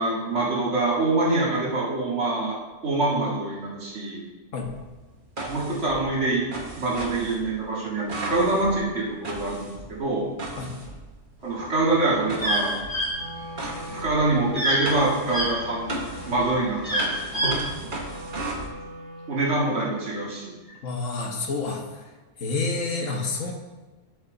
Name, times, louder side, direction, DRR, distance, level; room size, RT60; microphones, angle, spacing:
voice 1, 0.0-2.6 2.8-4.2 5.5-6.4 6.8-10.3 11.4-12.8 13.6-16.0 16.3-17.6 19.3-20.5, right 2 dB, 65° right, -4 dB, 2.2 m, -25 dB
sound 1, 4.6-11.5 12.3-18.7, right 2 dB, 45° right, 1.3 m, -37 dB
sound 2, 11.6-15.5 16.0-17.6, equal, 25° left, 2.5 m, -26 dB
Wind instrument woodwind instrument, 13.1-19.8, equal, 90° right, 1.9 m, -42 dB
voice 2, 20.8-21.8 22.4-23.5, left 3 dB, 85° left, 2 dB, 1.5 m, -28 dB
10.5 x 5.6 x 3.9 m, 1.2 s
omnidirectional pair, 1.3 m